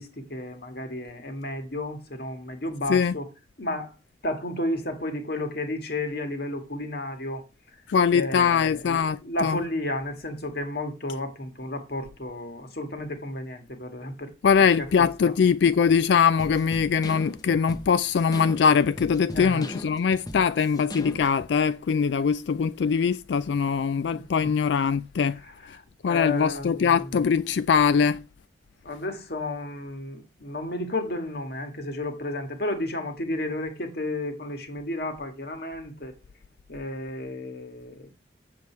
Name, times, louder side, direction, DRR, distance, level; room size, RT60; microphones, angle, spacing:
voice 1, 0.0-3.3 3.6-4.0 4.2-7.4 8.1-14.3 14.8-15.4 19.3-19.8 23.9-24.5 25.3-27.5 28.8-36.1 36.7-38.1, left 1 dB, 60° left, 1.9 m, -33 dB
voice 2, 7.9-9.6 14.4-25.4 26.0-28.2, left 6 dB, 75° left, 0.4 m, -22 dB
sound 1, 16.4-21.5, left 1 dB, 20° left, 0.9 m, -39 dB
8.0 x 7.5 x 4.5 m
head